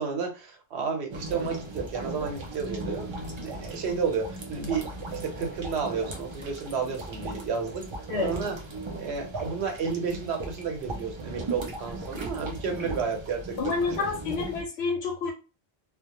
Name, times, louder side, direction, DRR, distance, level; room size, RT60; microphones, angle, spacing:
voice 1, 0.0-3.1 3.4-7.8 8.2-8.6 9.0-13.7, right 5 dB, 80° right, 3 dB, 1.0 m, -31 dB
sound 1, 1.1-14.6, right 2 dB, 50° right, 0.3 m, -37 dB
voice 2, 13.6-15.3, left 4 dB, 80° left, 0 dB, 0.9 m, -28 dB
2.1 x 2.1 x 2.9 m, 0.31 s
omnidirectional pair, 1.1 m